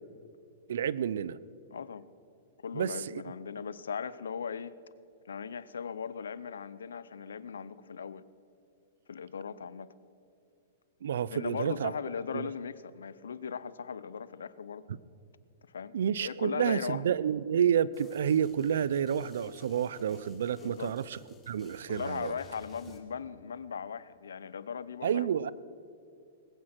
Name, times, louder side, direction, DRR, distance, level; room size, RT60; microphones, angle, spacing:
voice 1, 0.7-1.4 2.7-2.9 11.0-11.9 12.3-12.5 15.9-21.2 21.5-22.3 25.0-25.5, right 8 dB, 75° right, 19 dB, 0.5 m, -29 dB
voice 2, 1.7-2.0 2.6-4.8 5.3-8.2 9.1-9.9 11.3-14.8 15.7-17.2 20.6-21.0 21.9-25.3, left 6 dB, 90° left, 17 dB, 0.6 m, -38 dB
sound 1, 17.9-23.0, left 2 dB, 15° left, 1.9 m, -56 dB
19.5 x 8.7 x 6.0 m, 2.5 s
hypercardioid pair, 130°, 0 cm